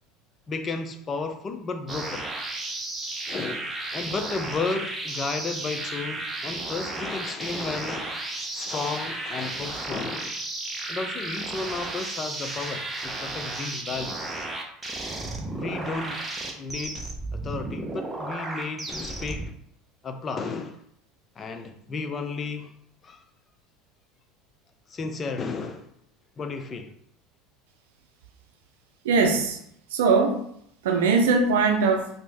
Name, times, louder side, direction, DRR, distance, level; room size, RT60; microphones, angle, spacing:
voice 1, 0.5-2.3 3.3-8.2 8.5-10.3 10.9-14.3 15.5-16.2 16.6-17.1 17.3-19.5 20.0-20.8 21.4-22.7 23.0-23.2 24.9-25.9 26.4-26.9, left 4 dB, 30° left, 0.5 m, -33 dB
sound 1, 1.9-19.5, right 2 dB, 15° right, 0.7 m, -33 dB
voice 2, 29.0-29.6 29.9-30.4 30.8-32.1, right 4 dB, 85° right, 0.4 m, -21 dB
3.0 x 2.7 x 3.4 m
supercardioid pair, 100°, 0 cm